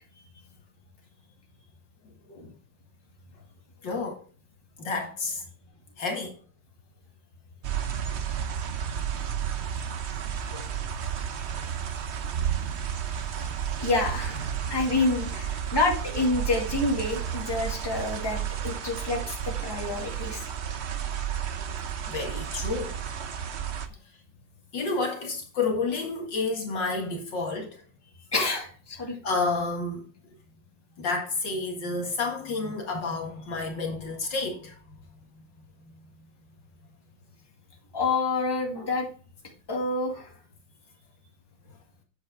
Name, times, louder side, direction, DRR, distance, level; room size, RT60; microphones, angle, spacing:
voice 1, 3.8-4.2 4.8-5.4 6.0-6.4 10.5-10.7 22.1-22.9 24.7-27.8 29.2-30.1 31.0-34.7, left 3 dB, 65° left, 2.4 m, -30 dB
sound 1, 7.6-23.9, right 8 dB, 65° right, 0.6 m, -32 dB
voice 2, 13.8-20.4 28.3-29.2 37.9-39.1 39.7-40.3, left 3 dB, 10° left, 2.2 m, -28 dB
8.8 x 7.9 x 3.6 m
omnidirectional pair, 2.2 m